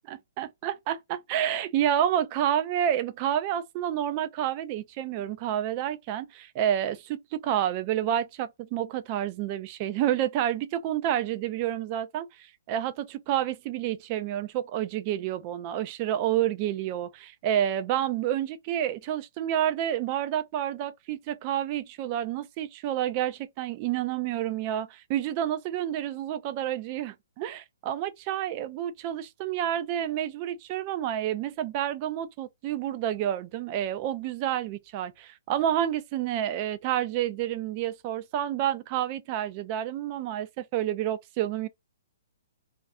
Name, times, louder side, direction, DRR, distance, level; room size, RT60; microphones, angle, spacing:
voice 1, 0.4-12.3 12.7-41.7, right 11 dB, 35° right, 0.4 m, -29 dB
2.5 x 2.3 x 2.5 m
figure-of-eight pair, 125°, 0 cm